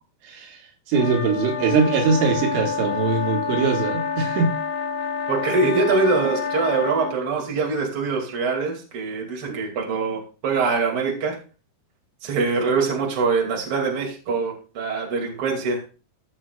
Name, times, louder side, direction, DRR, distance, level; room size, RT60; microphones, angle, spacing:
voice 1, 0.2-0.6 0.9-4.6, right 4 dB, 85° right, 2 dB, 4.0 m, -22 dB
sound 1, 0.9-7.2, left 5 dB, 75° left, 3.1 m, -28 dB
voice 2, 5.3-11.4 12.2-15.8, right 4 dB, 35° right, -1 dB, 2.7 m, -23 dB
16.0 x 6.7 x 2.4 m, 0.35 s
omnidirectional pair, 5.2 m